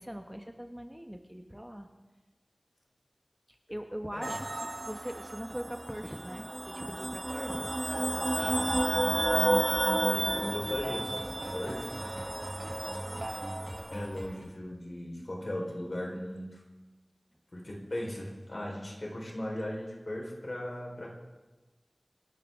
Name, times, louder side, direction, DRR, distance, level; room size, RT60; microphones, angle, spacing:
voice 1, 0.0-1.9 3.5-8.6 10.3-10.4, equal, 10° right, 5 dB, 1.1 m, -42 dB
sound 1, 4.2-13.9, right 1 dB, 40° right, 0.5 m, -32 dB
sound 2, 7.2-13.8, right 1 dB, 70° right, 2.0 m, -43 dB
sound 3, 8.4-14.5, equal, 15° left, 4.5 m, -44 dB
voice 2, 10.0-11.2 11.5-11.9 13.9-16.6 17.5-21.1, left 1 dB, 55° left, -2 dB, 4.3 m, -37 dB
25.5 x 11.5 x 3.7 m, 1.2 s
wide cardioid pair, 40°, 0 cm